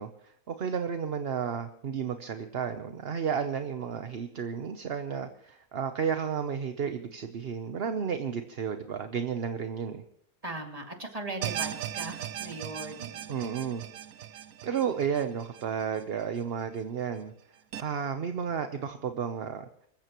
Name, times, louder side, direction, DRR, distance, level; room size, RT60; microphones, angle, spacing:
voice 1, 0.0-10.0 13.3-13.8 14.6-17.3 17.8-19.7, right 7 dB, 50° right, 8 dB, 0.9 m, -32 dB
voice 2, 10.4-13.3, right 2 dB, 25° right, 3 dB, 2.5 m, -39 dB
sound 1, 11.4-16.6 17.0-17.1 17.7-17.8, right 11 dB, 65° right, 1.1 m, -38 dB
26.0 x 15.0 x 3.0 m, 0.71 s
omnidirectional pair, 1.6 m